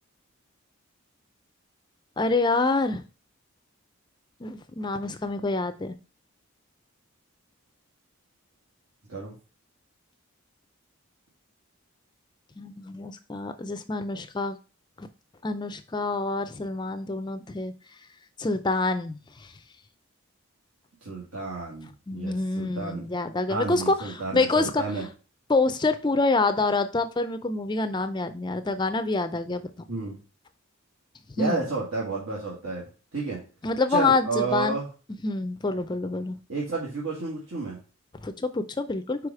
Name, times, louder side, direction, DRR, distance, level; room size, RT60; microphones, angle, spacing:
voice 1, 2.2-3.0 4.4-5.9 12.6-14.6 15.0-15.1 15.4-17.7 18.4-19.2 22.1-24.8 25.5-29.9 31.4-31.6 33.6-34.8 35.2-36.4 38.2-39.2, left 3 dB, 20° left, 10 dB, 0.4 m, -26 dB
voice 2, 21.0-23.1 23.5-25.1 29.9-30.2 31.4-33.4 33.9-34.9 36.5-37.8, right 3 dB, 75° right, -5 dB, 1.8 m, -31 dB
4.9 x 4.9 x 4.7 m, 0.35 s
head